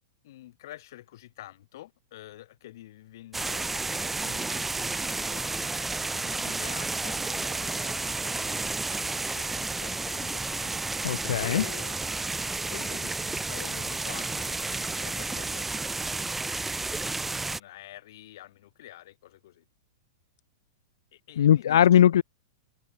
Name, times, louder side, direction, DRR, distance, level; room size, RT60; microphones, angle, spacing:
voice 1, 0.2-5.7 6.1-8.6 9.2-10.8 11.4-12.0 12.7-15.8 17.2-19.6 21.1-22.0, left 14 dB, 65° left, 7.7 m, -47 dB
sound 1, 3.3-17.6, right 3 dB, 10° right, 0.9 m, -31 dB
voice 2, 11.0-11.6 21.4-22.2, left 10 dB, 80° left, 0.4 m, -20 dB
hypercardioid pair, 135°, 2 cm